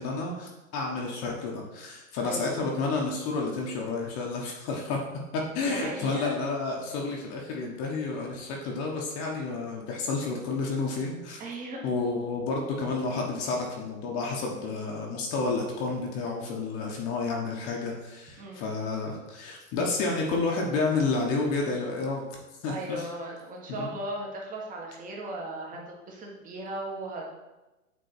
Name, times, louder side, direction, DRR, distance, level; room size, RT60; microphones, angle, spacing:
voice 1, 0.0-5.0 5.3-11.4 11.8-22.3 22.6-23.0 23.7-23.9, left 3 dB, 35° left, -1 dB, 1.3 m, -30 dB
voice 2, 2.2-2.6 5.6-6.3 11.4-11.9 18.4-18.6 22.7-27.3, right 1 dB, 20° right, -1 dB, 1.5 m, -37 dB
8.3 x 3.6 x 4.4 m, 1.1 s
hypercardioid pair, 130°, 42 cm